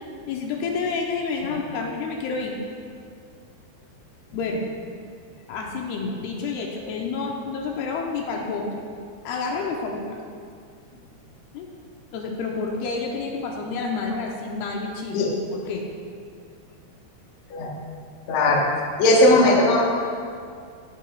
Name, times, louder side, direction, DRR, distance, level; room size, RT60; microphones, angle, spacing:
voice 1, 0.3-2.6 4.3-4.6 5.5-8.8 9.2-10.2 11.5-11.7 12.1-15.2 15.5-15.8, left 4 dB, 80° left, 0 dB, 2.7 m, -29 dB
voice 2, 18.3-18.7 19.0-19.9, left 1 dB, 60° left, -2 dB, 2.0 m, -17 dB
15.5 x 9.8 x 2.4 m, 2.2 s
omnidirectional pair, 4.7 m